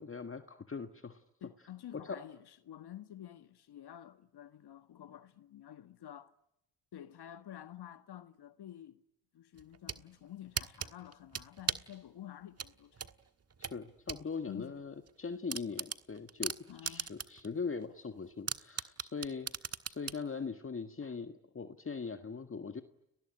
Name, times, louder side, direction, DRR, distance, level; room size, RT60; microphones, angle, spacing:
voice 1, 0.0-1.2 1.9-2.2 13.6-16.5 16.8-22.8, left 5 dB, 30° left, 1.7 m, -41 dB
voice 2, 1.4-6.3 6.9-9.0 9.3-13.1 14.5-14.7 16.7-17.1 21.0-21.1, left 11 dB, 65° left, 1.6 m, -50 dB
sound 1, 9.6-10.0 10.6-11.9 12.6-14.2 14.6-14.7 15.1-15.2 15.5-17.5 17.8-17.9 18.5-20.2, right 6 dB, 35° right, 1.5 m, -37 dB
30.0 x 20.0 x 9.8 m
cardioid pair, 75°, 43 cm